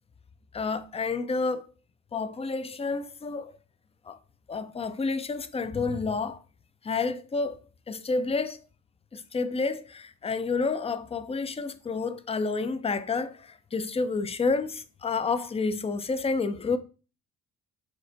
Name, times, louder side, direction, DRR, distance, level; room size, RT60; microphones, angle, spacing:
voice 1, 0.5-1.6 2.1-3.5 4.1-4.2 4.5-6.4 6.8-8.6 9.1-16.8, left 4 dB, 20° left, 0.3 m, -29 dB
6.3 x 2.5 x 2.6 m
cardioid pair, 70°, 37 cm